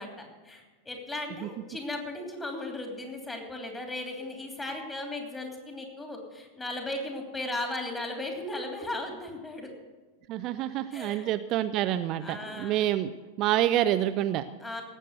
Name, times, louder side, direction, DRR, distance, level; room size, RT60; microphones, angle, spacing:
voice 1, 0.0-9.7 10.9-11.3 12.2-12.8 14.6-14.8, left 2 dB, 15° left, 2 dB, 2.9 m, -36 dB
voice 2, 10.3-13.1 13.4-14.5, right 12 dB, 35° right, 10 dB, 0.4 m, -27 dB
18.0 x 7.6 x 6.6 m, 1.3 s
figure-of-eight pair, 90°, 0 cm